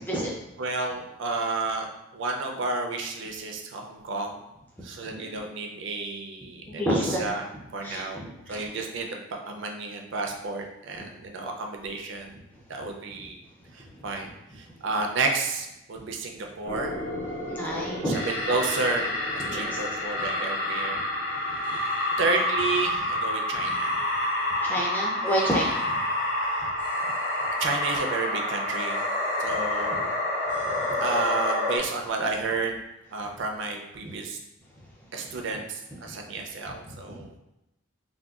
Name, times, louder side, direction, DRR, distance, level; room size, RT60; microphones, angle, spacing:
voice 1, 0.6-4.4 4.8-7.5 7.7-12.4 12.7-13.4 13.7-17.0 17.6-21.0 22.2-23.9 26.4-26.7 27.6-29.0 29.4-30.1 31.0-32.8 33.1-34.4 35.1-37.3, right 3 dB, 60° right, 2 dB, 0.4 m, -31 dB
voice 2, 5.0-5.4 6.7-7.3 7.8-8.6 17.5-18.2 19.4-19.8 24.6-25.8, equal, 10° left, -4 dB, 0.5 m, -29 dB
sound 1, 16.6-31.8, left 1 dB, 55° left, 0.8 m, -28 dB
3.6 x 2.2 x 2.3 m, 0.91 s
head